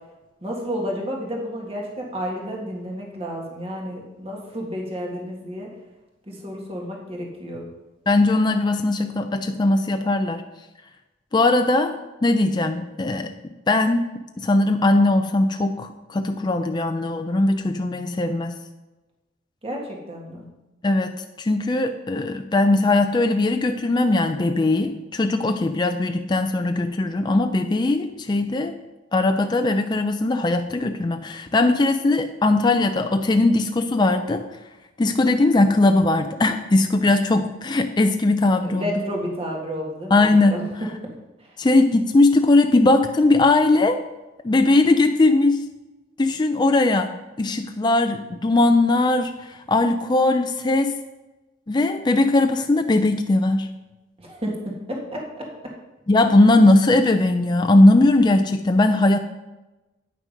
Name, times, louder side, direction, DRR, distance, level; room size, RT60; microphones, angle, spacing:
voice 1, 0.4-5.7 6.3-7.7 19.6-20.4 38.6-40.2 40.5-40.6 54.2-55.5, equal, 30° right, -1 dB, 1.8 m, -31 dB
voice 2, 8.1-10.4 11.3-12.0 12.2-13.3 13.7-14.1 14.4-18.6 20.8-21.1 21.4-28.7 29.1-34.4 35.0-38.9 40.1-40.6 41.6-44.0 44.4-45.7 46.2-50.9 51.7-53.7 56.1-59.2, left 2 dB, 25° left, 6 dB, 0.4 m, -19 dB
9.1 x 6.2 x 5.2 m, 1.1 s
head